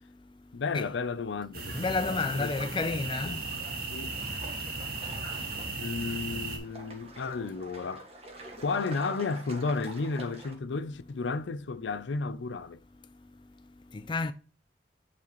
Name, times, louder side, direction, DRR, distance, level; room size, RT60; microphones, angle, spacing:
voice 1, 0.5-2.7 3.2-3.4 3.9-4.2 5.8-8.1 8.6-12.8, left 4 dB, 80° left, 0.5 m, -33 dB
sound 1, 1.5-6.6, right 3 dB, 50° right, 1.7 m, -36 dB
voice 2, 1.7-3.5 13.9-14.3, left 3 dB, 25° left, 0.4 m, -30 dB
sound 2, 1.9-10.5, right 2 dB, 35° right, 1.3 m, -47 dB
8.3 x 4.2 x 3.1 m
head